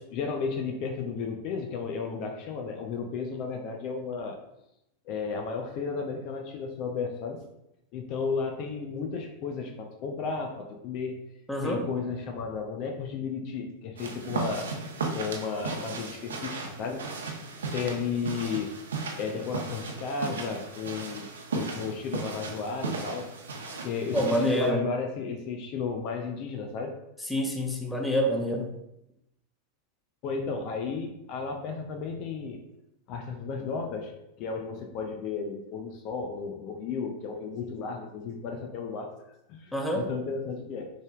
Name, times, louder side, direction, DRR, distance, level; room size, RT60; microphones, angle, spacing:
voice 1, 0.1-4.4 5.1-7.4 7.9-11.2 11.6-14.7 15.1-17.4 17.7-18.7 19.2-23.3 23.8-27.0 30.2-32.6 33.1-34.1 34.4-40.9, left 5 dB, 45° left, 3 dB, 0.6 m, -33 dB
voice 2, 11.5-11.8 24.1-24.8 27.3-28.7 39.7-40.1, equal, 5° left, 1 dB, 0.9 m, -27 dB
sound 1, 14.0-24.7, right 4 dB, 75° right, 0.8 m, -36 dB
6.4 x 3.4 x 2.3 m, 0.84 s
figure-of-eight pair, 95°, 0 cm